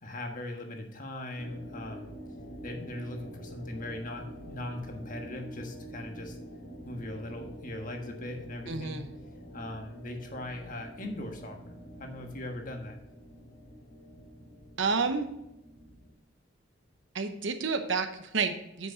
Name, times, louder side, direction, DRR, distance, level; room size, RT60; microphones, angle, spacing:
voice 1, 0.0-2.1 2.6-6.4 6.8-9.1 9.5-13.0, left 1 dB, 45° left, 3 dB, 1.5 m, -40 dB
sound 1, 1.4-16.1, equal, 65° left, 2.0 m, -47 dB
voice 2, 8.7-9.1 14.8-15.3 17.1-18.9, right 4 dB, 70° right, 7 dB, 0.9 m, -30 dB
9.2 x 6.3 x 4.0 m, 0.85 s
head